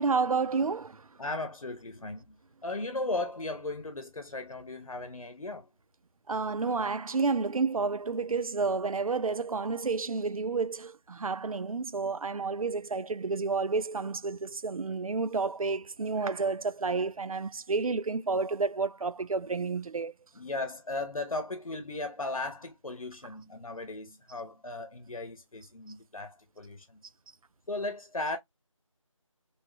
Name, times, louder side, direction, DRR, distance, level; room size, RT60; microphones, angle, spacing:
voice 1, 0.0-1.1 6.3-20.1, right 4 dB, 90° right, 0.5 m, -30 dB
voice 2, 1.2-2.3 2.6-5.7 20.3-27.0 27.7-28.4, left 2 dB, 85° left, 0.9 m, -36 dB
3.4 x 3.2 x 2.9 m
figure-of-eight pair, 175°, 17 cm